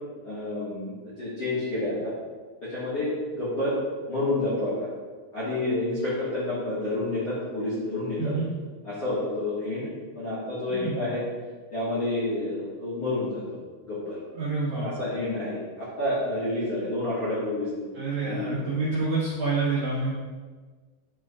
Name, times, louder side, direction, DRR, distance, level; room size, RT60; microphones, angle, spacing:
voice 1, 0.2-2.1 2.6-3.8 4.1-4.9 5.3-8.3 8.8-9.9 10.2-11.2 11.7-13.6 13.9-14.2 14.8-17.7 18.2-18.7, left 2 dB, 55° left, -10 dB, 1.8 m, -29 dB
voice 2, 8.2-8.5 10.7-11.0 14.3-14.9 17.9-20.1, right 3 dB, 55° right, -11 dB, 2.4 m, -27 dB
11.0 x 4.2 x 2.5 m, 1.5 s
omnidirectional pair, 5.3 m